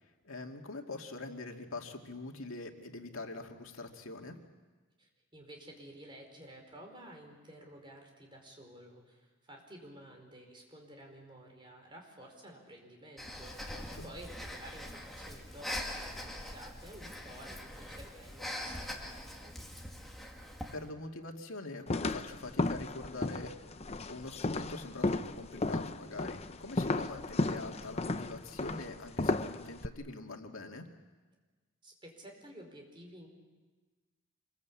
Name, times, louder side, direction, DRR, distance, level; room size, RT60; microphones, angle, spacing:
voice 1, 0.2-4.4 13.7-14.1 20.7-23.5 24.1-30.9, left 2 dB, 80° left, 3 dB, 2.3 m, -44 dB
voice 2, 5.0-19.5 31.8-33.3, right 1 dB, 25° right, 2 dB, 5.0 m, -52 dB
Breathing, 13.2-20.8, left 1 dB, ahead, 2.5 m, -43 dB
sound 1, 21.9-29.9, left 2 dB, 30° left, 0.7 m, -34 dB
27.0 x 22.5 x 8.6 m, 1.3 s
head